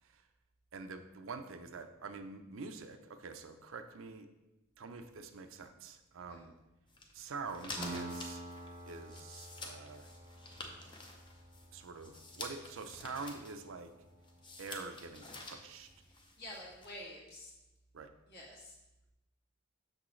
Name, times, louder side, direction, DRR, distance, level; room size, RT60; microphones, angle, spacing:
voice 1, 0.7-4.3 4.8-6.5 7.1-8.4 8.9-10.1 11.7-13.9 14.6-15.9 17.9-18.1, right 4 dB, 70° right, 8 dB, 0.5 m, -46 dB
sound 1, 6.9-16.9, left 2 dB, 25° left, 0.7 m, -50 dB
Piano, 7.8-15.2, right 1 dB, 15° right, 0.8 m, -49 dB
voice 2, 16.4-17.5 18.3-18.8, left 1 dB, 50° left, -3 dB, 1.7 m, -48 dB
6.5 x 6.1 x 3.2 m, 0.98 s
head